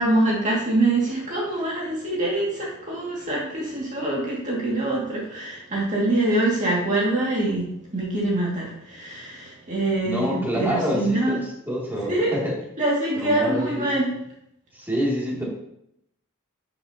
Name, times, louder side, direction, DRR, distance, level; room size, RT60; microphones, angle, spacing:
voice 1, 0.0-7.7 7.9-11.4 12.0-12.3 12.8-14.1, right 2 dB, 35° right, -4 dB, 2.3 m, -24 dB
voice 2, 10.0-11.4 11.7-12.5 13.2-13.9 14.7-15.4, equal, 10° right, -5 dB, 2.7 m, -26 dB
12.5 x 7.0 x 2.9 m, 0.78 s
head